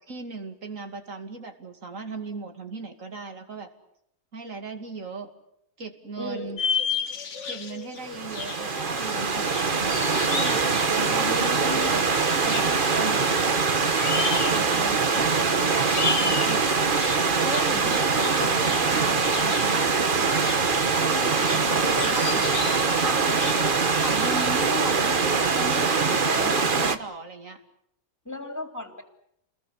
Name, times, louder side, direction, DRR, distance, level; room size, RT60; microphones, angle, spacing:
voice 1, 0.1-3.7 4.3-5.3 5.8-6.6 7.5-9.7 10.2-11.5 11.7-13.5 14.4-16.6 17.4-20.5 21.0-22.4 23.0-27.6, right 3 dB, 60° right, 6 dB, 2.9 m, -37 dB
voice 2, 6.2-6.6 10.9-12.1 18.2-18.5 21.8-22.5 26.1-26.8 28.3-29.0, equal, 10° left, 5 dB, 3.6 m, -34 dB
sound 1, 6.6-24.5, left 6 dB, 55° left, 1.6 m, -35 dB
Stream / Liquid, 8.0-27.0, right 4 dB, 35° right, 1.3 m, -23 dB
29.0 x 21.0 x 8.4 m, 0.75 s
omnidirectional pair, 1.6 m